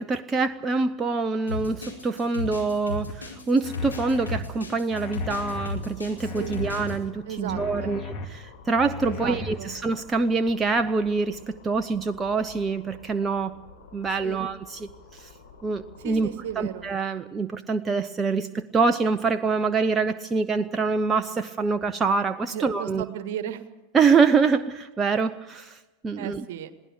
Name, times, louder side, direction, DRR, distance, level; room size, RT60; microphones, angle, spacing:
voice 1, 0.0-13.6 13.9-15.3 15.6-16.3 16.6-23.1 23.9-26.5, right 4 dB, 20° right, 9 dB, 0.7 m, -25 dB
sound 1, 1.5-6.9, left 3 dB, 80° left, 4.6 m, -34 dB
sound 2, 3.1-3.2 3.6-4.4 4.9-5.7 6.2-7.0 7.5-8.3 8.7-9.5, left 6 dB, 30° left, 2.3 m, -36 dB
sound 3, 5.1-16.9, left 4 dB, 60° left, 5.0 m, -50 dB
voice 2, 6.2-6.6 7.3-8.0 9.0-9.7 14.2-14.4 16.0-16.8 22.5-23.6 26.2-26.8, right 9 dB, 50° right, 12 dB, 1.5 m, -35 dB
21.5 x 16.0 x 8.2 m, 1.1 s
figure-of-eight pair, 90°, 0 cm